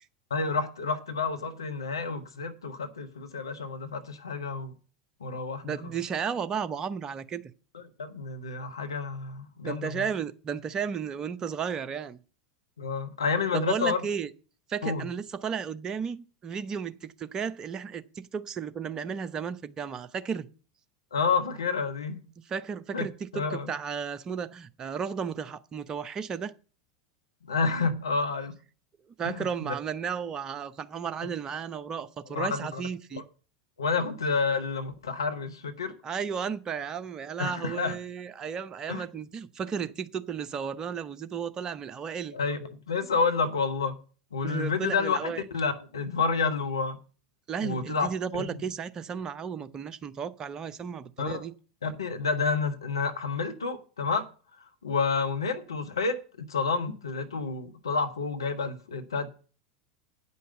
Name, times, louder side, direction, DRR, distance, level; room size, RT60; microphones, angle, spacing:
voice 1, 0.3-4.7 5.2-5.7 7.7-10.0 12.8-14.1 14.8-15.0 21.1-22.2 22.9-23.1 23.3-23.7 27.5-28.6 29.2-29.4 32.3-32.8 33.1-33.2 33.8-35.9 37.4-37.9 38.9-39.0 42.3-43.9 44.3-47.0 47.6-48.1 48.4-48.5 51.2-51.4 51.8-54.3 54.8-59.3, left 4 dB, 75° left, 1.1 m, -29 dB
voice 2, 5.6-7.5 9.6-12.2 13.5-14.3 14.7-20.5 22.4-26.5 29.2-33.2 36.0-42.4 44.4-45.4 47.5-51.5, right 7 dB, 25° right, 0.7 m, -34 dB
8.8 x 5.5 x 7.8 m
figure-of-eight pair, 80°, 3 cm